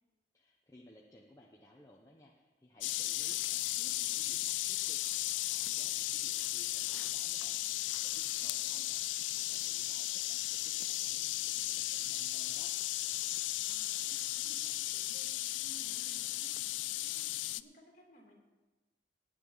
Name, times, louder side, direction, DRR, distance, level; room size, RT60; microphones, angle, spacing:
voice 1, 0.3-5.0 5.3-7.6 8.0-9.0 9.3-12.7, left 1 dB, 15° left, -2 dB, 0.9 m, -60 dB
sound 1, 2.8-17.6, left 16 dB, 80° left, 0.4 m, -35 dB
voice 2, 8.4-8.8 13.6-18.4, equal, 45° left, -1 dB, 2.8 m, -60 dB
18.0 x 9.2 x 4.0 m, 1.2 s
head